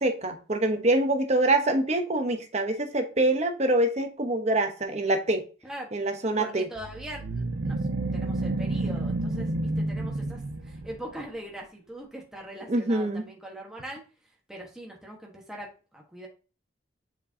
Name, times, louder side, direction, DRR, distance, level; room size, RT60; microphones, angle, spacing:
voice 1, 0.0-5.4 5.9-6.7 12.7-13.3, right 2 dB, 40° right, 6 dB, 0.9 m, -25 dB
voice 2, 6.4-7.8 8.1-14.0 14.5-16.3, right 1 dB, 5° right, -2 dB, 1.2 m, -41 dB
sound 1, 6.8-11.2, right 2 dB, 85° right, 0.7 m, -30 dB
7.5 x 4.5 x 2.7 m, 0.35 s
head